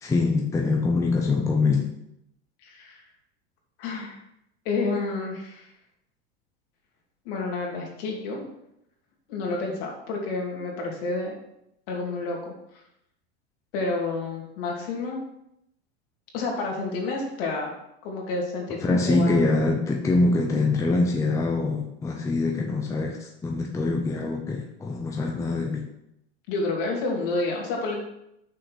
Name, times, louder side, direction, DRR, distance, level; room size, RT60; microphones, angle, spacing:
voice 1, 0.0-1.9 18.8-25.9, left 3 dB, 10° left, 1 dB, 0.7 m, -24 dB
voice 2, 2.6-3.0 3.8-4.2 4.6-5.7 7.2-8.5 9.3-11.3 11.9-12.5 13.7-15.2 16.3-17.7 18.0-19.3 26.5-28.0, left 3 dB, 55° left, 0 dB, 2.8 m, -29 dB
6.4 x 5.4 x 6.2 m, 0.80 s
supercardioid pair, 140°, 32 cm